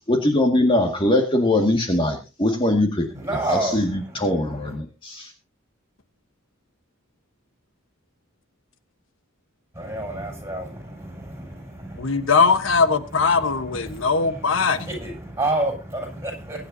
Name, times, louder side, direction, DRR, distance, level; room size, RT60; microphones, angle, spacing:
voice 1, 0.1-3.1 3.3-5.3, left 1 dB, 25° left, 2.0 m, -21 dB
voice 2, 3.2-4.3 9.7-12.3 13.9-14.1 14.6-16.7, right 2 dB, 15° right, 7.6 m, -29 dB
voice 3, 12.0-14.9, left 4 dB, 75° left, 1.2 m, -20 dB
23.0 x 10.0 x 2.8 m
head